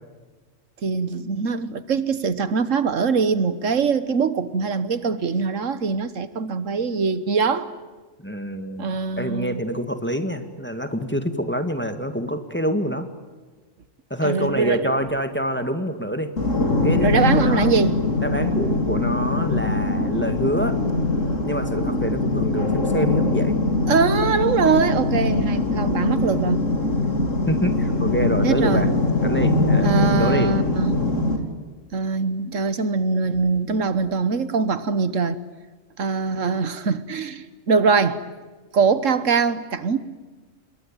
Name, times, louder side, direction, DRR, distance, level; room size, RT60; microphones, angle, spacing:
voice 1, 0.8-7.7 8.8-9.6 14.2-14.9 17.0-18.0 23.9-26.6 28.4-28.9 29.8-31.0 31.9-35.4 36.0-38.2 38.7-40.0, right 5 dB, 75° right, 14 dB, 1.6 m, -22 dB
voice 2, 8.2-13.1 14.1-16.3 16.8-17.7 18.2-20.8 21.4-23.6 26.1-26.5 27.5-28.9 29.2-30.5, equal, 10° left, 8 dB, 2.0 m, -26 dB
sound 1, 16.4-31.4, left 2 dB, 75° left, 3.4 m, -22 dB
27.0 x 22.5 x 9.1 m, 1.3 s
omnidirectional pair, 1.3 m